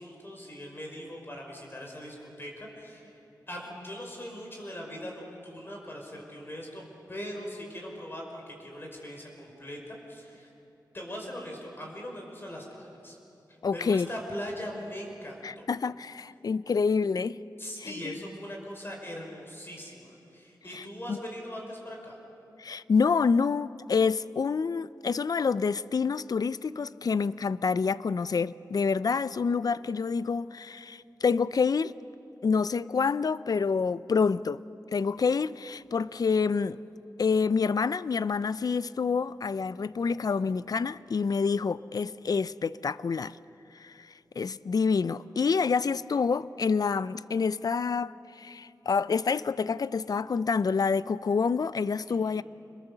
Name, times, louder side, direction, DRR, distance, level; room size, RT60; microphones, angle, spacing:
voice 1, 0.0-3.2 3.5-10.5 10.9-13.2 13.7-15.7 17.6-22.2 52.1-52.4, equal, 30° left, 5.4 m, -41 dB
voice 2, 13.6-14.1 15.4-17.4 17.8-18.2 20.7-20.8 21.1-21.2 22.6-31.9 32.4-34.6 34.9-36.8 37.2-43.4 43.8-43.9 44.4-48.1 48.4-52.4, left 5 dB, 60° left, 0.5 m, -27 dB
27.0 x 21.5 x 6.8 m
wide cardioid pair, 85°, 7 cm